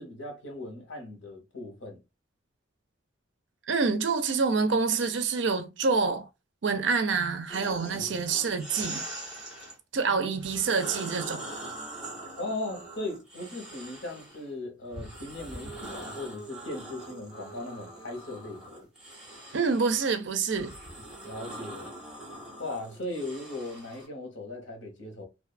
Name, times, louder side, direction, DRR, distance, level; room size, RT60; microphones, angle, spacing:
voice 1, 0.0-2.0 7.9-8.2 10.0-10.3 12.4-18.8 21.2-21.9 22.6-25.3, left 2 dB, 75° left, 1.2 m, -38 dB
voice 2, 3.7-6.3 6.6-9.0 9.9-11.4 19.5-20.7, right 4 dB, 70° right, 0.5 m, -27 dB
sound 1, 7.5-9.8 10.3-14.4 14.9-24.1, right 2 dB, 5° right, 1.0 m, -42 dB
2.5 x 2.3 x 2.4 m
head